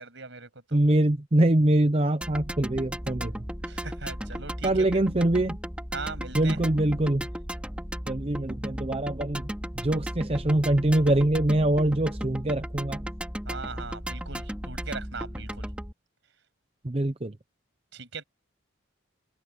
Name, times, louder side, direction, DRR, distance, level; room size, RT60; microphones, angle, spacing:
voice 1, 0.0-0.8 3.6-4.9 5.9-6.6 13.4-15.7 17.9-18.2, right 4 dB, 60° right, 7.6 m, -39 dB
voice 2, 0.7-3.4 4.6-5.6 6.3-7.3 8.1-9.5 9.8-13.0 16.8-17.4, right 1 dB, 30° right, 0.7 m, -24 dB
sound 1, 2.2-15.9, equal, 5° right, 3.4 m, -35 dB
head